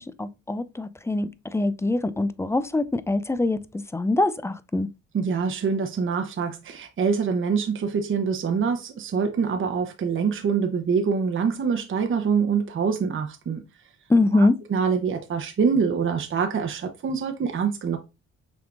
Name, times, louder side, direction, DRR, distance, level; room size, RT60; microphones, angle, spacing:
voice 1, 0.0-4.9 14.1-14.6, left 2 dB, 10° left, 0.3 m, -24 dB
voice 2, 5.1-13.6 14.3-18.0, right 6 dB, 40° right, 0.8 m, -25 dB
5.9 x 3.6 x 2.5 m
cardioid pair, 90°, 30 cm